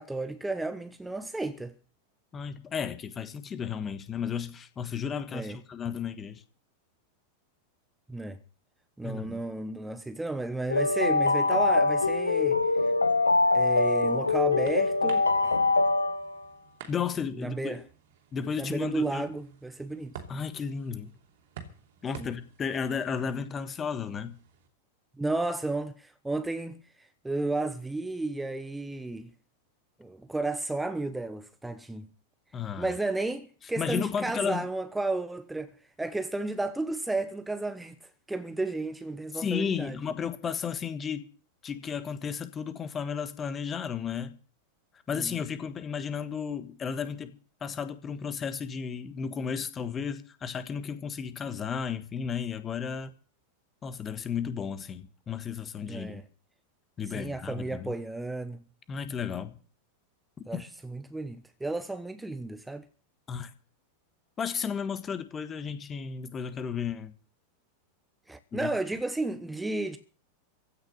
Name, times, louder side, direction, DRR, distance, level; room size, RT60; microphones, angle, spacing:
voice 1, 0.0-1.7 5.3-5.6 8.1-8.4 9.0-12.6 13.5-15.6 17.4-17.8 18.6-20.2 22.2-22.3 25.2-26.8 27.2-29.3 30.0-32.1 32.8-35.7 36.0-38.0 38.3-40.0 45.1-45.4 55.9-56.2 57.1-58.6 60.5-62.8 68.3-70.0, right 2 dB, 5° right, 1.1 m, -33 dB
voice 2, 2.3-6.4 9.0-9.4 16.9-17.7 18.3-19.2 20.3-21.1 22.0-24.3 32.5-32.9 33.8-34.6 39.3-41.3 41.6-44.4 45.1-47.3 47.6-53.1 53.8-56.2 57.0-57.9 58.9-59.6 60.5-60.6 63.3-63.5 64.4-67.1 68.5-68.7, left 6 dB, 20° left, 1.5 m, -33 dB
sound 1, 10.7-16.4, left 3 dB, 80° left, 0.9 m, -24 dB
sound 2, 13.9-24.7, right 7 dB, 55° right, 2.9 m, -51 dB
16.0 x 6.5 x 9.9 m
figure-of-eight pair, 90°, 0 cm